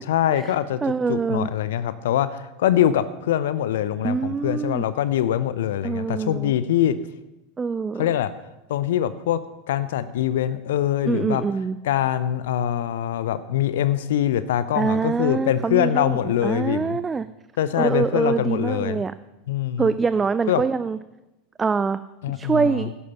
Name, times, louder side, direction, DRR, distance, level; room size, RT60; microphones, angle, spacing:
voice 1, 0.1-0.8 1.1-7.0 8.0-8.3 8.7-11.4 11.8-17.0 17.6-19.0 19.5-19.9 20.5-20.6 22.2-22.9, left 11 dB, 65° left, 14 dB, 0.5 m, -23 dB
voice 2, 0.8-1.5 4.0-4.8 5.8-6.5 7.6-8.1 11.1-11.8 14.8-17.3 17.8-19.1 19.8-21.0 21.6-22.0 22.3-22.9, right 5 dB, 20° right, 14 dB, 0.4 m, -24 dB
11.0 x 11.0 x 5.7 m, 0.99 s
figure-of-eight pair, 85°, 0 cm